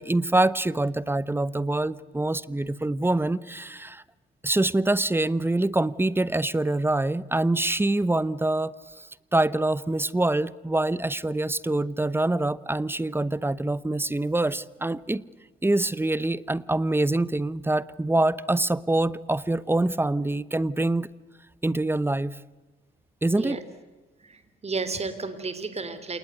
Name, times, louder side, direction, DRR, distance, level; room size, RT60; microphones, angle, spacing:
voice 1, 0.0-4.0 4.4-8.7 9.3-15.2 15.6-21.1 21.6-22.3 23.2-23.6, right 2 dB, 10° right, 19 dB, 0.9 m, -25 dB
voice 2, 24.2-26.2, right 4 dB, 30° right, 12 dB, 3.5 m, -32 dB
28.0 x 20.0 x 8.1 m, 1.2 s
cardioid pair, 90°, 20 cm